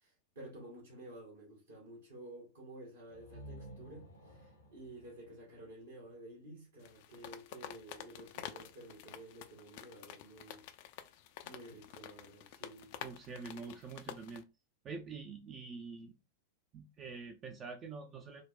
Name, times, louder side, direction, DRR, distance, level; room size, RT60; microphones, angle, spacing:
voice 1, 0.0-10.7 11.4-13.0, right 1 dB, 70° right, 1.3 m, -52 dB
sound 1, 3.1-6.8, right 1 dB, 75° left, 0.9 m, -54 dB
sound 2, 6.8-14.4, left 11 dB, 50° left, 0.3 m, -49 dB
voice 2, 13.0-14.5 14.8-16.1 16.7-18.4, right 4 dB, 30° right, 0.4 m, -46 dB
3.8 x 2.1 x 2.4 m
figure-of-eight pair, 90°, 0 cm